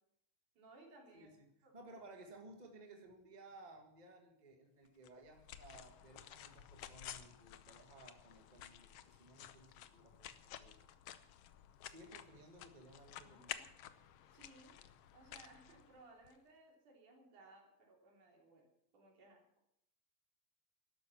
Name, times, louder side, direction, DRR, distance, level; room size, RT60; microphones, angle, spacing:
voice 1, 0.6-1.3 1.6-1.7 14.3-14.8 15.1-18.7 18.9-19.4, right 2 dB, 75° right, 0 dB, 4.8 m, -62 dB
voice 2, 1.1-1.5 1.7-10.8 11.9-13.6, right 2 dB, 25° right, 3 dB, 0.9 m, -58 dB
sound 1, 5.0-16.4, left 11 dB, 70° left, 1.4 m, -53 dB
13.0 x 12.0 x 7.2 m, 0.76 s
omnidirectional pair, 3.5 m